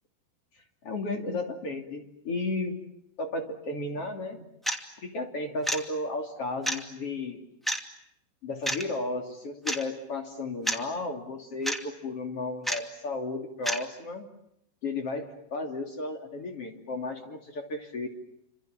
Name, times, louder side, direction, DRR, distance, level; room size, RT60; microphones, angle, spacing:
voice 1, 0.8-2.8 3.2-4.4 5.0-7.4 8.4-14.3 14.8-18.1, left 2 dB, 40° left, 4 dB, 3.3 m, -34 dB
sound 1, 4.7-4.8 5.6-5.8 6.7-6.8 7.7-7.8 8.6-8.8 9.7-9.8 10.7-10.8 11.6-11.8 12.7-12.8 13.6-13.8, right 1 dB, ahead, 1.1 m, -28 dB
29.5 x 27.0 x 7.4 m, 0.78 s
omnidirectional pair, 4.8 m